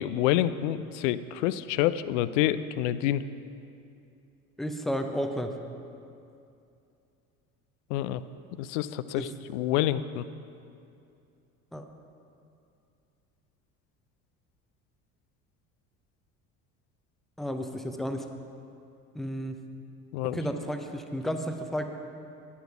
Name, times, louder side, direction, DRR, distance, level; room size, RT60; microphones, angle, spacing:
voice 1, 0.0-3.2 7.9-8.2 8.6-10.2 20.1-20.4, left 13 dB, 55° left, 15 dB, 0.5 m, -27 dB
voice 2, 4.6-5.5 9.1-9.3 11.7-11.9 17.4-18.2 19.1-19.5 20.3-21.8, equal, ahead, 6 dB, 0.6 m, -32 dB
10.5 x 8.5 x 5.7 m, 2.6 s
figure-of-eight pair, 60°, 46 cm